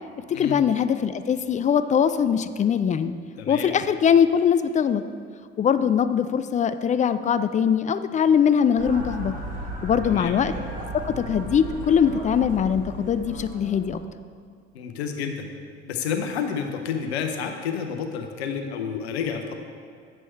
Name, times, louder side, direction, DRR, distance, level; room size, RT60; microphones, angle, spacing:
voice 1, 0.3-3.1 3.5-5.0 5.6-9.3 9.8-10.5 11.0-14.0, left 7 dB, 25° left, 12 dB, 0.3 m, -21 dB
voice 2, 3.4-3.7 10.0-10.3 14.7-15.5 15.9-19.5, left 6 dB, 75° left, 4 dB, 0.8 m, -30 dB
sound 1, 8.8-13.9, right 1 dB, 25° right, 1.9 m, -35 dB
9.0 x 6.2 x 4.4 m, 2.1 s
figure-of-eight pair, 60°, 32 cm